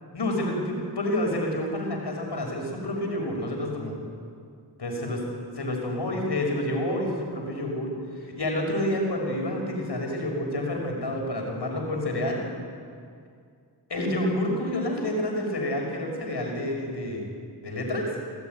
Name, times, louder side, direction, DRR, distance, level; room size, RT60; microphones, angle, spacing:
voice 1, 0.1-4.0 4.8-5.2 5.5-12.4 13.9-17.3 17.6-18.1, left 1 dB, 75° left, 1 dB, 6.0 m, -29 dB
28.0 x 14.5 x 9.6 m, 2.3 s
cardioid pair, 50°, 41 cm